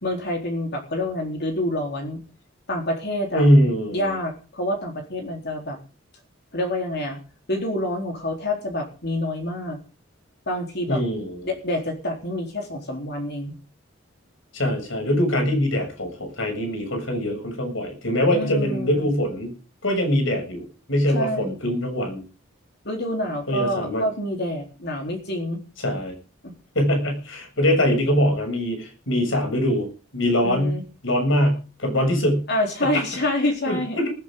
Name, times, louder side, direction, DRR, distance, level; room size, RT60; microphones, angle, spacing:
voice 1, 0.0-2.2 2.7-3.5 3.9-5.8 6.5-7.2 7.5-9.8 10.5-11.0 11.4-13.5 18.3-19.1 21.1-21.5 22.8-25.6 26.4-26.5 30.4-30.8 32.5-34.0, left 1 dB, 55° left, 2 dB, 3.8 m, -27 dB
voice 2, 3.3-4.2 10.9-11.5 14.5-19.5 19.8-22.2 23.5-24.1 25.8-26.2 26.8-30.8 31.0-32.4 32.8-33.0 33.7-34.1, equal, 70° left, 5 dB, 7.3 m, -23 dB
19.5 x 16.0 x 3.9 m, 0.36 s
head